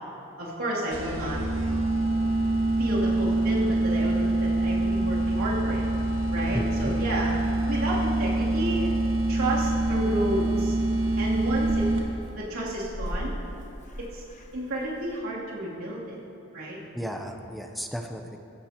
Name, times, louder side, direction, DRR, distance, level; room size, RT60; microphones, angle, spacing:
voice 1, 0.4-1.4 2.8-5.8 6.3-8.9 9.3-10.8 11.2-11.9 12.3-13.3 14.0-14.2 14.5-16.2 16.5-16.8, right 1 dB, 90° right, -6 dB, 2.9 m, -31 dB
sound 1, 0.9-12.3, right 2 dB, 65° right, 1.6 m, -25 dB
Purr / Meow, 6.4-15.2, equal, 35° left, 1.0 m, -42 dB
voice 2, 6.5-7.0 16.9-18.4, equal, ahead, 4 dB, 0.6 m, -34 dB
16.0 x 13.5 x 2.9 m, 2.8 s
head